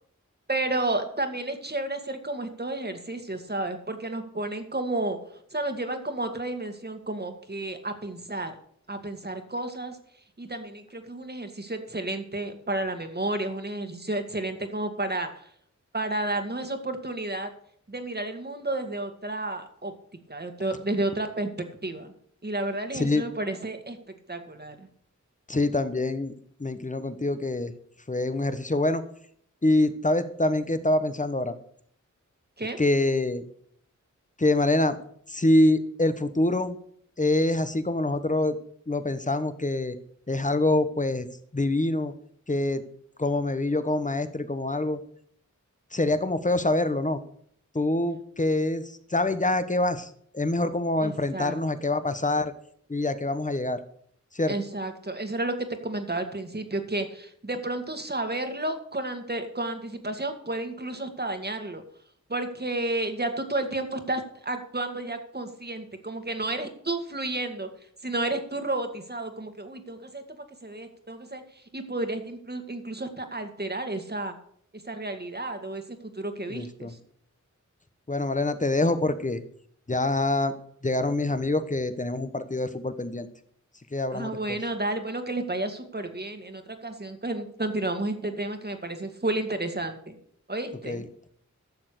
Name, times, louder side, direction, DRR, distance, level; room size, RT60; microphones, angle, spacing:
voice 1, 0.5-5.2 5.5-8.6 8.9-10.0 10.4-15.3 15.9-17.5 17.9-19.9 20.3-21.5 21.8-22.1 22.4-24.0 24.3-24.9 32.6-32.8 51.0-51.5 54.5-61.8 62.3-67.7 68.0-70.2 70.6-74.4 74.9-75.8 76.2-77.0 84.1-90.2 90.5-91.0, right 2 dB, 35° right, 6 dB, 1.9 m, -31 dB
voice 2, 22.9-23.3 25.5-26.3 26.6-27.7 28.1-29.0 29.6-31.5 32.8-33.4 34.4-35.0 35.3-36.8 37.2-38.6 38.9-40.0 40.3-41.3 41.5-42.1 42.5-42.8 43.2-45.0 45.9-47.2 47.7-52.5 52.9-53.8 54.3-54.5 76.5-76.9 78.1-79.4 79.9-80.5 80.8-83.3 83.9-84.6 90.9-91.1, left 2 dB, 25° left, 11 dB, 1.1 m, -25 dB
12.0 x 6.9 x 6.6 m, 0.64 s
wide cardioid pair, 60°, 30 cm